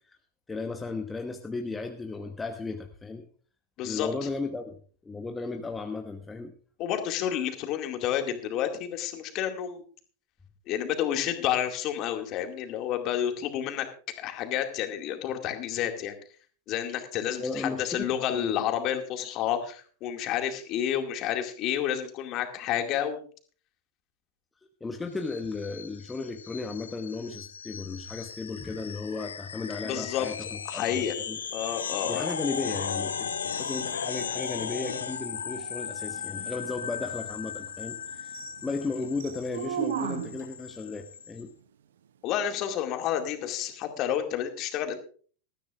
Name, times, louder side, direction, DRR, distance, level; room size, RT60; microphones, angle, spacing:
voice 1, 0.5-3.2 3.8-4.7 5.0-6.5 17.4-18.5 24.8-31.4 32.1-41.5, left 3 dB, 10° left, 4 dB, 1.1 m, -35 dB
voice 2, 3.8-4.3 6.8-9.8 10.7-13.9 14.2-16.1 16.7-23.2 29.8-31.1 31.5-32.3 42.2-45.0, left 10 dB, 35° left, 5 dB, 2.2 m, -30 dB
sound 1, 25.2-41.4, left 7 dB, 70° left, 0.9 m, -37 dB
sound 2, 32.7-40.6 43.7-43.8, right 10 dB, 60° right, 0.6 m, -40 dB
20.0 x 13.5 x 2.5 m, 0.42 s
figure-of-eight pair, 90°, 0 cm